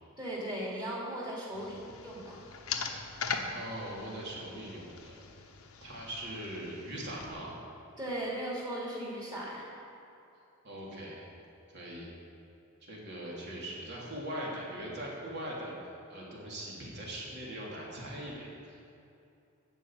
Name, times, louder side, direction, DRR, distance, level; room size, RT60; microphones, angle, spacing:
voice 1, 0.2-2.4 8.0-9.7, right 1 dB, 20° right, -5 dB, 3.2 m, -37 dB
sound 1, 1.5-7.3, left 5 dB, 85° left, 1.1 m, -41 dB
voice 2, 3.5-5.1 5.8-7.5 10.6-11.3 11.7-12.1 12.8-18.8, right 1 dB, 55° right, -5 dB, 3.2 m, -41 dB
14.5 x 5.4 x 9.0 m, 2.7 s
head